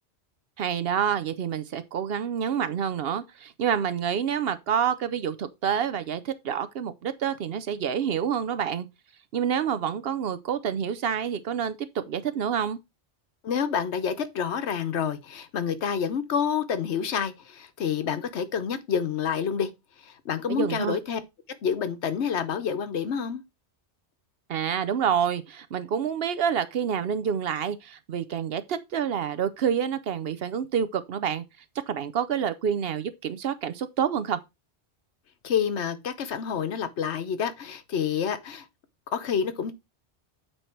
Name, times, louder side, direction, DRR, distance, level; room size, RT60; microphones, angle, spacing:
voice 1, 0.6-8.9 9.3-12.8 20.5-21.0 24.5-31.4 31.9-34.4, right 8 dB, 65° right, 0.8 m, -28 dB
voice 2, 13.4-19.7 20.0-21.2 21.6-23.4 35.4-38.7 39.1-39.7, left 7 dB, 75° left, 1.1 m, -28 dB
8.9 x 3.3 x 4.4 m
omnidirectional pair, 1.2 m